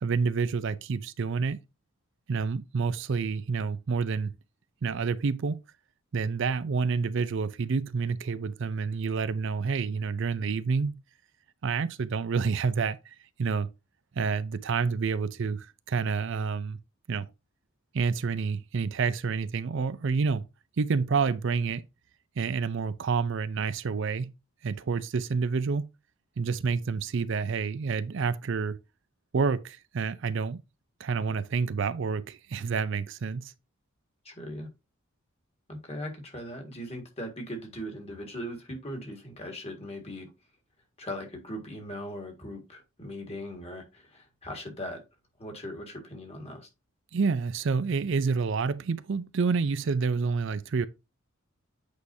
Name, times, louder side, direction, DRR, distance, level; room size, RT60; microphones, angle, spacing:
voice 1, 0.0-1.6 2.3-4.3 4.8-5.6 6.1-11.0 11.6-13.7 14.2-16.8 17.1-17.3 17.9-20.5 20.8-21.8 22.4-24.3 24.6-25.9 26.4-28.8 29.3-30.6 31.0-33.5 47.1-50.9, right 5 dB, 60° right, 0.4 m, -28 dB
voice 2, 34.3-34.7 35.7-40.3 41.0-45.0 45.4-46.7, equal, 30° left, 1.8 m, -39 dB
8.3 x 4.9 x 2.7 m
head